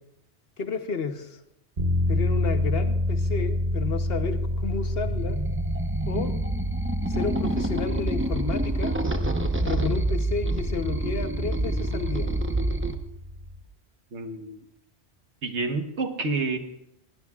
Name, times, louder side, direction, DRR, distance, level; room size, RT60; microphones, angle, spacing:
voice 1, 0.6-1.4 2.1-5.4 6.1-6.3 7.1-9.0 9.6-12.3, left 5 dB, 60° left, 8 dB, 1.2 m, -31 dB
sound 1, 1.8-13.6, equal, 45° right, 1.3 m, -29 dB
sound 2, 5.0-12.9, right 2 dB, 15° right, 0.7 m, -28 dB
voice 2, 14.1-14.6 15.4-16.6, right 3 dB, 85° right, 6 dB, 1.5 m, -29 dB
20.0 x 17.0 x 2.4 m, 0.85 s
omnidirectional pair, 1.1 m